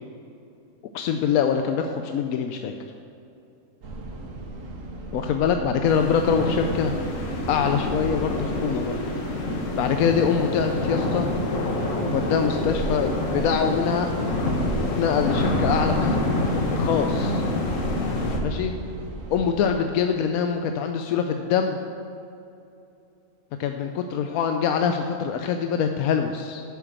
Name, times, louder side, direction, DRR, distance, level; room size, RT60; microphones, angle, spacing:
voice 1, 0.9-2.7 5.1-6.9 7.5-9.0 9.8-11.3 12.1-14.1 15.0-17.4 18.4-18.8 19.3-21.8 23.6-26.6, left 7 dB, 85° left, 5 dB, 1.0 m, -24 dB
sound 1, 3.8-19.7, right 2 dB, 70° right, 1.5 m, -35 dB
sound 2, 5.9-18.4, left 2 dB, 65° left, 1.5 m, -27 dB
8.4 x 6.9 x 6.7 m, 2.7 s
omnidirectional pair, 1.5 m